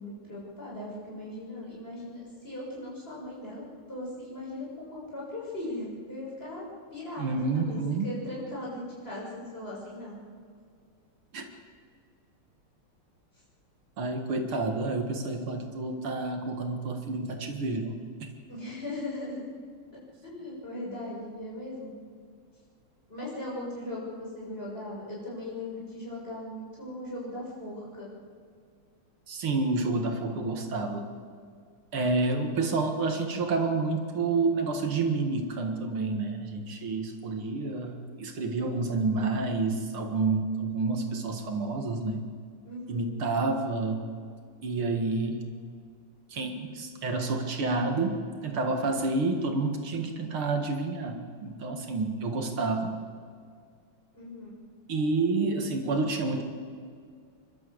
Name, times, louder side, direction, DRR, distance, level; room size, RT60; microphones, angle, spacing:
voice 1, 0.0-6.6 6.9-10.2 18.5-19.5 19.9-22.0 23.1-28.1 42.6-43.1 51.6-51.7 54.1-54.5, left 1 dB, 25° left, -6 dB, 7.4 m, -39 dB
voice 2, 7.2-8.1 11.3-11.4 14.0-18.0 29.3-31.1 31.9-42.2 42.9-44.0 44.6-45.4 46.3-52.9 54.9-56.4, right 3 dB, 75° right, 4 dB, 2.7 m, -29 dB
28.0 x 12.5 x 8.0 m, 2.1 s
omnidirectional pair, 2.4 m